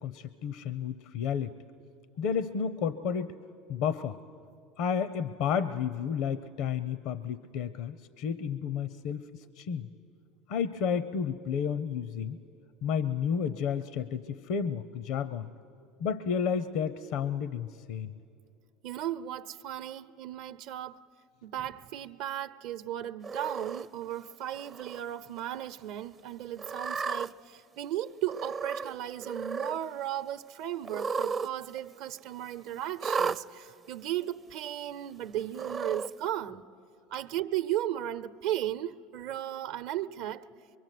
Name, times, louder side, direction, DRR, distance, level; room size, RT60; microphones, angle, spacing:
voice 1, 0.0-1.5 2.2-3.4 3.7-4.2 4.8-9.9 10.5-12.4 12.8-15.5 16.0-18.1, left 7 dB, 70° left, 0.7 m, -31 dB
voice 2, 18.8-21.1 21.4-36.6 37.1-40.5, right 12 dB, 70° right, 0.8 m, -35 dB
Cat, 23.2-23.8 24.6-25.0 25.4-25.5 26.6-27.3 28.3-28.9 29.2-29.8 30.8-31.5 31.8-31.9 33.0-33.4 34.3-34.4 35.5-36.1, right 5 dB, 30° right, 0.5 m, -33 dB
24.0 x 23.5 x 9.2 m
hypercardioid pair, 90°, 0 cm